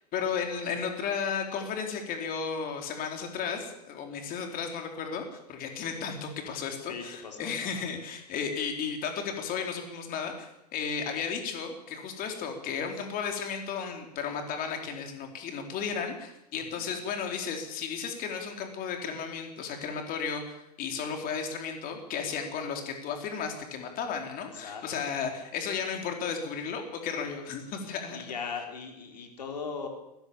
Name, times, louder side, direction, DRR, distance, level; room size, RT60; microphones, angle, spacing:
voice 1, 0.1-28.2, left 6 dB, 45° left, 3 dB, 4.4 m, -34 dB
voice 2, 6.8-7.8 16.5-16.9 24.5-25.1 28.1-29.9, left 5 dB, 85° left, 2 dB, 4.5 m, -39 dB
21.5 x 19.0 x 7.2 m, 0.85 s
hypercardioid pair, 95°, 21 cm